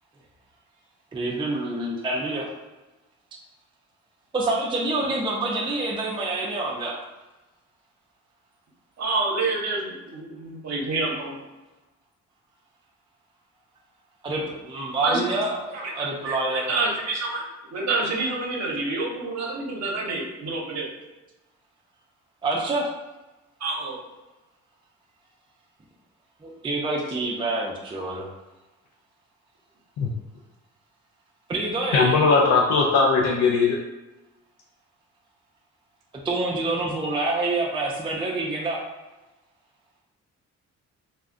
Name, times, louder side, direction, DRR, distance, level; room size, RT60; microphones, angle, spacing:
voice 1, 1.1-2.5 4.3-7.0 14.2-16.7 22.4-22.9 26.4-28.3 31.5-32.1 36.2-38.8, right 2 dB, 15° right, -2 dB, 0.4 m, -27 dB
voice 2, 9.0-11.4 15.0-15.2 15.7-17.4 17.7-20.9 23.6-24.0, right 3 dB, 60° right, -2 dB, 0.8 m, -28 dB
voice 3, 31.9-33.8, left 4 dB, 60° left, -2 dB, 0.5 m, -19 dB
2.4 x 2.1 x 3.6 m, 1.1 s
cardioid pair, 90°, 30 cm